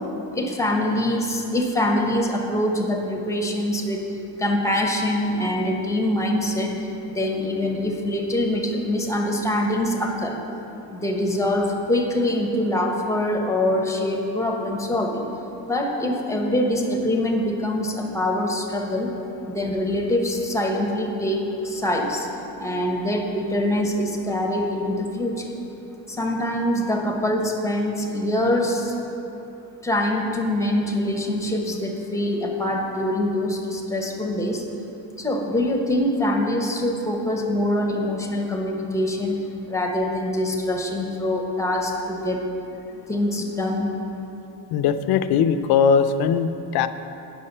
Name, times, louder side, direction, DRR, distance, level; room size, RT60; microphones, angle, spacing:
voice 1, 0.3-4.0 4.4-6.7 7.1-10.4 10.9-15.3 15.7-19.1 19.5-22.3 22.6-25.5 26.1-28.9 29.8-34.6 35.2-39.4 39.7-42.4 43.1-43.9, left 1 dB, 10° left, 1 dB, 1.1 m, -24 dB
voice 2, 44.7-46.9, left 7 dB, 75° left, 10 dB, 0.6 m, -20 dB
9.6 x 6.3 x 5.5 m, 2.9 s
cardioid pair, 120°, 38 cm